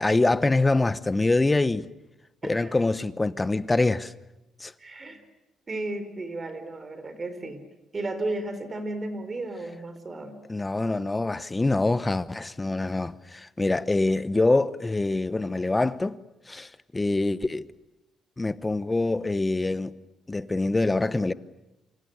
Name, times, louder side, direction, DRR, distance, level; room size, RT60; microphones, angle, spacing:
voice 1, 0.0-1.9 2.4-4.1 4.6-4.7 10.5-16.2 16.5-17.7 18.4-19.9 20.3-21.3, left 2 dB, 20° left, 1.0 m, -25 dB
voice 2, 2.4-2.8 4.8-5.2 5.7-7.6 7.9-10.4, right 2 dB, 30° right, 4.5 m, -34 dB
27.0 x 26.0 x 8.2 m
cardioid pair, 90°, 0 cm